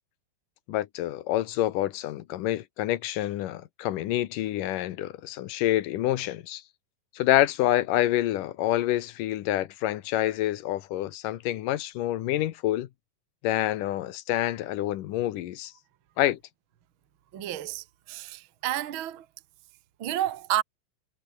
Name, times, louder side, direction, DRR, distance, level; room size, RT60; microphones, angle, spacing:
voice 1, 0.7-6.6 7.2-12.9 13.4-15.7 16.2-16.4, left 14 dB, 75° left, 2.6 m, -27 dB
voice 2, 17.3-19.2 20.0-20.6, right 13 dB, 50° right, 1.7 m, -30 dB
omnidirectional pair, 4.0 m